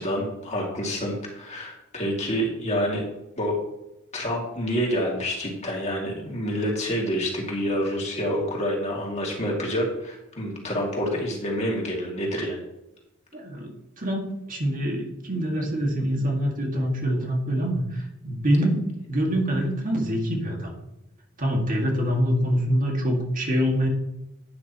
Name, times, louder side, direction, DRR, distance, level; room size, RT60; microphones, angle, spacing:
voice 1, 0.0-3.0 3.4-3.5 4.1-12.6, equal, 35° left, -1 dB, 2.5 m, -27 dB
voice 2, 13.3-13.7 14.0-18.8 19.1-20.7 21.4-23.9, equal, 40° right, 1 dB, 2.1 m, -25 dB
11.5 x 9.8 x 3.1 m, 0.91 s
head